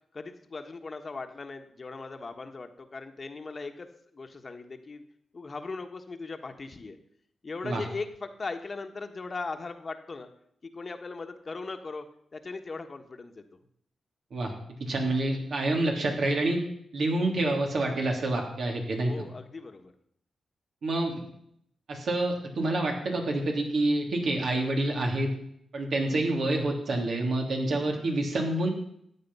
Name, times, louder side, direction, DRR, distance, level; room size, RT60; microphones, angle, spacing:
voice 1, 0.1-3.9 4.1-5.0 5.3-7.0 7.4-10.3 10.6-12.1 12.3-13.4 19.1-19.9, left 3 dB, 40° left, 7 dB, 1.4 m, -39 dB
voice 2, 14.8-16.6 16.9-19.1 20.8-21.2 21.9-25.3 25.7-28.7, right 2 dB, 70° right, 1 dB, 3.2 m, -27 dB
14.0 x 9.0 x 5.6 m, 0.71 s
cardioid pair, 80°, 0 cm